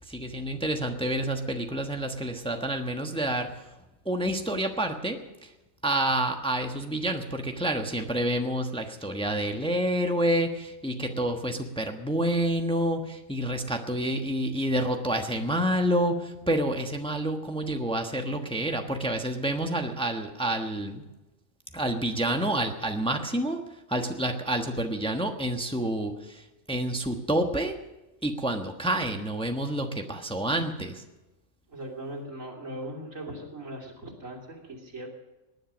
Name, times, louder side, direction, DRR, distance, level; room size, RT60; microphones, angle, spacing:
voice 1, 0.1-3.5 4.0-5.2 5.8-21.0 21.7-23.6 23.9-26.1 26.7-27.7 28.2-31.0, right 1 dB, 5° left, 4 dB, 1.1 m, -28 dB
voice 2, 31.7-35.1, right 1 dB, 90° right, 0 dB, 3.4 m, -39 dB
19.0 x 10.5 x 6.2 m, 1.0 s
omnidirectional pair, 1.3 m